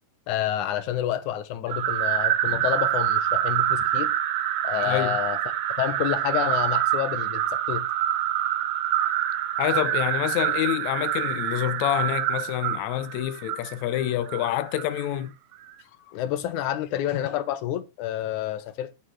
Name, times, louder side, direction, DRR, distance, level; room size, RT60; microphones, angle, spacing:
voice 1, 0.3-4.1 4.6-5.4 5.8-7.9 16.1-18.9, left 11 dB, 70° left, 2.1 m, -29 dB
sound 1, 1.7-15.1, right 11 dB, 90° right, 2.9 m, -26 dB
voice 2, 4.8-5.2 9.6-15.3, left 13 dB, 85° left, 1.6 m, -27 dB
11.0 x 7.2 x 4.5 m
omnidirectional pair, 4.2 m